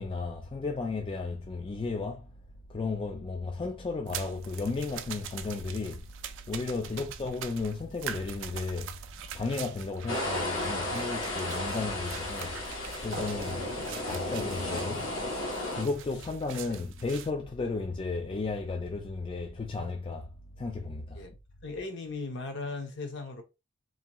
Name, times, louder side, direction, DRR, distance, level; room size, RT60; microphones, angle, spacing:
voice 1, 0.0-2.3 2.7-6.0 6.5-8.9 9.3-12.5 13.0-13.8 14.1-15.1 15.7-20.3 20.6-21.2, left 3 dB, 25° left, 0.3 m, -34 dB
sound 1, 4.1-17.3, right 9 dB, 65° right, 0.3 m, -44 dB
sound 2, 10.1-15.8, left 1 dB, 80° left, 1.0 m, -34 dB
voice 2, 21.6-23.4, left 3 dB, 60° left, 0.7 m, -38 dB
2.7 x 2.2 x 2.9 m
head